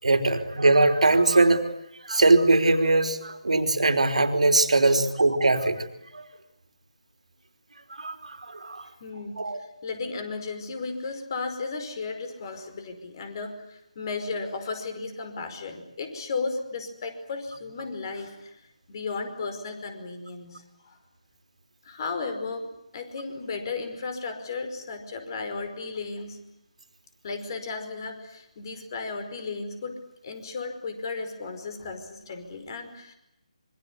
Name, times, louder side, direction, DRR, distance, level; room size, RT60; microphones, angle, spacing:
voice 1, 0.0-1.6 2.0-5.8 6.1-6.3 7.9-8.9 9.4-9.6, right 2 dB, 70° right, 6 dB, 3.6 m, -21 dB
voice 2, 9.0-18.6 18.9-21.0 21.8-26.4 27.2-33.1, left 4 dB, 35° left, 8 dB, 5.1 m, -35 dB
26.5 x 23.5 x 9.7 m, 0.80 s
figure-of-eight pair, 155°, 4 cm